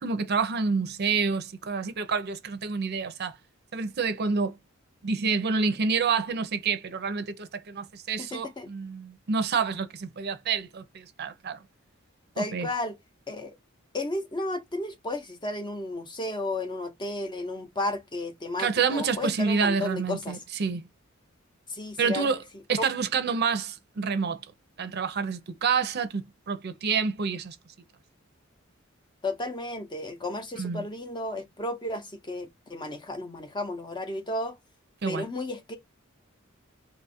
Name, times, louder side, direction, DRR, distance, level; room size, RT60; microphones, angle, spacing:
voice 1, 0.0-3.4 3.7-4.5 5.0-11.6 12.4-12.7 18.6-20.8 22.0-22.4 22.7-24.4 24.8-27.6 30.6-30.8 35.0-35.2, right 5 dB, 50° right, 0.5 m, -28 dB
voice 2, 8.2-8.7 12.4-13.0 13.3-13.5 13.9-20.4 21.7-22.3 22.7-22.8 29.2-34.6 35.0-35.8, left 2 dB, 20° left, 0.6 m, -33 dB
2.9 x 2.4 x 4.1 m
head